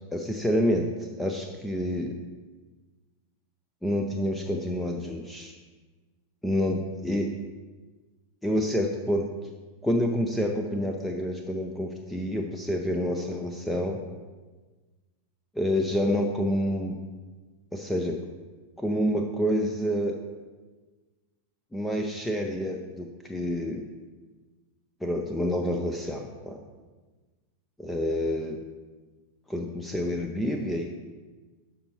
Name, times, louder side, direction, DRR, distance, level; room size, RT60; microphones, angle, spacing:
voice 1, 0.1-0.9 1.2-2.2 3.8-5.5 6.4-7.3 8.4-9.3 9.8-14.0 15.6-17.0 17.7-18.2 18.8-20.2 21.7-23.9 25.0-26.6 27.8-28.6 29.5-30.9, equal, 5° left, 3 dB, 0.6 m, -28 dB
12.0 x 5.4 x 3.0 m, 1.3 s
figure-of-eight pair, 90°, 0 cm